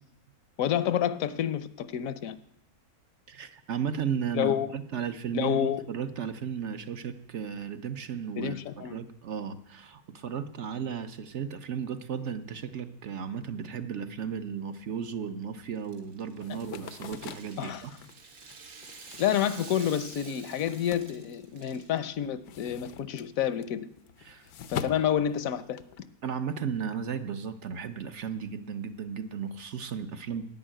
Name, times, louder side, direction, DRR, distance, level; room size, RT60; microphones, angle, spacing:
voice 1, 0.6-2.4 4.3-4.8 5.3-5.9 8.4-9.0 17.6-17.8 19.2-23.9 24.7-25.8, left 10 dB, 70° left, 14 dB, 1.1 m, -29 dB
voice 2, 3.3-17.9 24.2-24.5 26.2-30.4, right 7 dB, 60° right, 9 dB, 1.0 m, -35 dB
Rattle (instrument), 15.7-22.0, right 5 dB, 75° right, 1.9 m, -49 dB
sound 1, 16.4-21.8 22.1-26.0, left 8 dB, 90° left, 1.2 m, -43 dB
11.0 x 9.0 x 8.9 m, 0.75 s
omnidirectional pair, 1.5 m